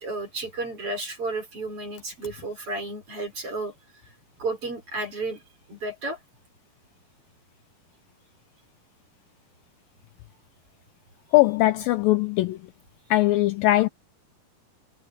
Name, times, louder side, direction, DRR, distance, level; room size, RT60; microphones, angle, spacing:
voice 1, 0.0-3.7 4.4-5.4 5.7-6.2, right 2 dB, 35° right, 6.0 m, -32 dB
voice 2, 11.3-12.6 13.1-13.9, left 17 dB, 85° left, 2.0 m, -20 dB
omnidirectional pair, 4.8 m